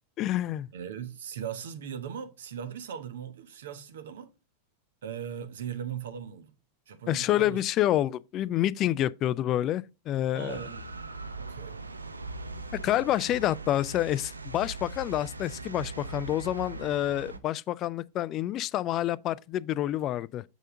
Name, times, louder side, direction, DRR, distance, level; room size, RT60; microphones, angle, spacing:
voice 1, 0.2-0.7 7.1-10.6 12.7-20.4, left 13 dB, 35° left, 0.3 m, -28 dB
voice 2, 0.7-4.3 5.0-6.5 6.9-7.6 10.3-11.1 11.4-11.8, right 8 dB, 60° right, 1.1 m, -39 dB
sound 1, 10.5-17.4, right 3 dB, 80° right, 0.7 m, -40 dB
7.3 x 5.5 x 3.7 m
figure-of-eight pair, 90°, 0 cm